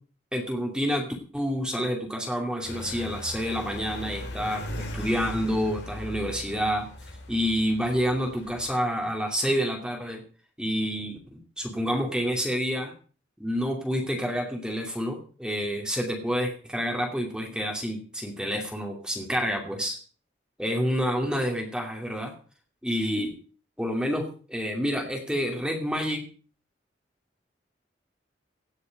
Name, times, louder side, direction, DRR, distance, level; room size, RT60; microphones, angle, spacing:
voice 1, 0.3-1.1 1.3-4.7 4.9-6.9 7.3-10.2 10.6-11.2 11.6-12.9 13.4-20.0 20.6-22.3 22.8-23.3 23.8-26.2, equal, 5° right, 1 dB, 2.7 m, -28 dB
sound 1, 2.6-8.7, left 1 dB, 70° left, 3.9 m, -38 dB
17.0 x 6.8 x 7.6 m, 0.40 s
head